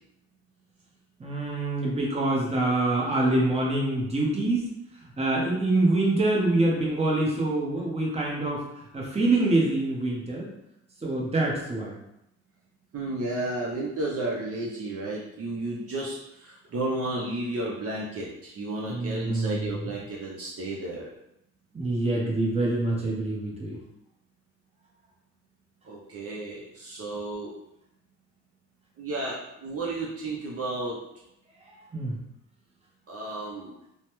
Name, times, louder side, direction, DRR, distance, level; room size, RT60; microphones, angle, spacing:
voice 1, 1.2-4.7 5.2-8.6 8.9-10.5 11.0-11.9 18.9-19.9 21.7-23.8 31.9-32.2, right 2 dB, 20° right, -3 dB, 0.9 m, -25 dB
voice 2, 12.9-16.1 16.5-21.1 25.9-27.5 29.0-31.0 33.1-33.7, right 2 dB, 50° right, -4 dB, 0.6 m, -32 dB
3.1 x 2.1 x 2.9 m, 0.81 s
cardioid pair, 90°, 30 cm